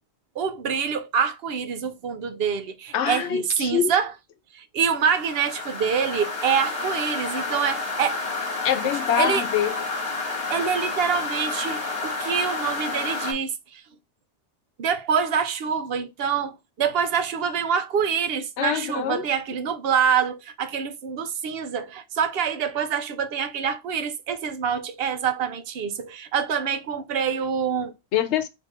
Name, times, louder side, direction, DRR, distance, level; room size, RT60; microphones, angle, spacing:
voice 1, 0.4-4.1 4.5-8.2 9.2-9.4 10.5-13.8 14.8-27.9, right 7 dB, 65° right, 0.8 m, -26 dB
voice 2, 2.9-3.9 8.6-9.7 18.6-19.2 28.1-28.5, left 10 dB, 85° left, 0.9 m, -24 dB
sound 1, 4.9-13.3, left 3 dB, 60° left, 1.7 m, -30 dB
3.5 x 2.7 x 4.2 m
omnidirectional pair, 1.1 m